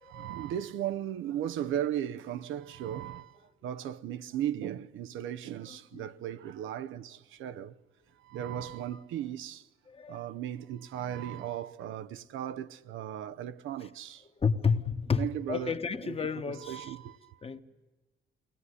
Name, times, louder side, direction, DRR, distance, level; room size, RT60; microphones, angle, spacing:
voice 1, 0.0-7.7 8.2-9.6 10.1-14.2 15.2-15.8 16.0-16.1 16.5-17.4, right 10 dB, 85° right, 0.7 m, -36 dB
voice 2, 9.9-10.2 14.4-16.9 17.4-17.6, left 5 dB, 30° left, 1.2 m, -31 dB
22.5 x 18.0 x 9.8 m
cardioid pair, 90°, 20 cm